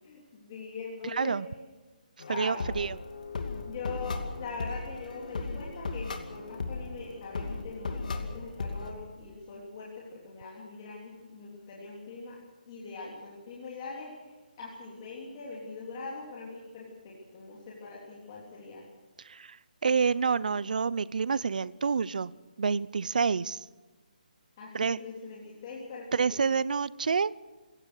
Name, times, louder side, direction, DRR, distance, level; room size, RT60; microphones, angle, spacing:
voice 1, 0.0-1.4 2.3-2.9 3.6-12.4 12.7-14.3 14.6-18.8 24.6-26.3, left 3 dB, 25° left, -4 dB, 3.5 m, -42 dB
voice 2, 1.0-1.5 2.3-3.0 19.2-19.6 19.8-22.3 22.6-23.7 24.7-25.0 26.1-27.3, right 5 dB, 60° right, 20 dB, 0.6 m, -28 dB
sound 1, 2.2-8.9, left 3 dB, 60° left, 2.6 m, -37 dB
27.0 x 16.5 x 6.5 m, 1.3 s
hypercardioid pair, 175°, 5 cm